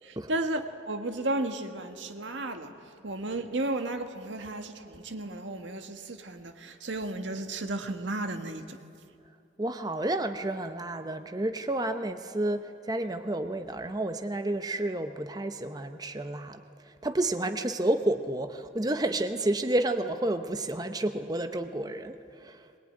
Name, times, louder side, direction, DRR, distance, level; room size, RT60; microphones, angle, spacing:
voice 1, 0.0-2.7 3.0-8.8, right 2 dB, 80° right, 7 dB, 1.6 m, -33 dB
voice 2, 9.6-16.6 16.9-22.7, right 1 dB, 20° right, 7 dB, 0.8 m, -30 dB
22.0 x 20.5 x 9.5 m, 2.5 s
head